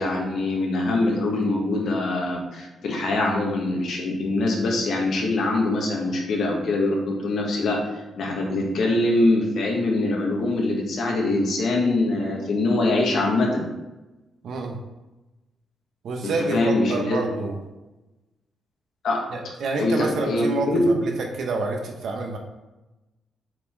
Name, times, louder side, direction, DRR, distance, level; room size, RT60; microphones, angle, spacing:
voice 1, 0.0-7.8 8.2-13.6 16.2-17.4 19.0-19.2 19.8-20.9, left 2 dB, 55° left, -1 dB, 1.6 m, -23 dB
voice 2, 14.4-14.8 16.0-17.6 19.3-22.4, right 3 dB, 55° right, 2 dB, 0.9 m, -28 dB
7.4 x 4.2 x 4.5 m, 1.0 s
wide cardioid pair, 175°, 0 cm